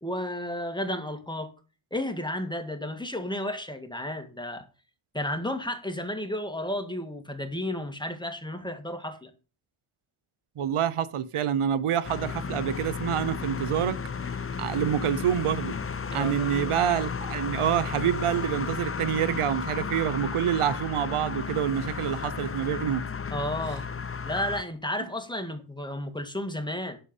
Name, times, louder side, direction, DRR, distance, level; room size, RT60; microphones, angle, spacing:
voice 1, 0.0-1.5 1.9-4.7 5.1-9.3 16.1-16.5 23.3-23.9 24.3-27.0, left 1 dB, 10° left, 1.8 m, -32 dB
voice 2, 10.6-14.0 14.6-15.8 16.1-23.1, right 9 dB, 90° right, 0.8 m, -27 dB
sound 1, 12.0-24.6, left 5 dB, 30° left, 0.6 m, -33 dB
10.0 x 7.0 x 5.4 m
wide cardioid pair, 80°, 49 cm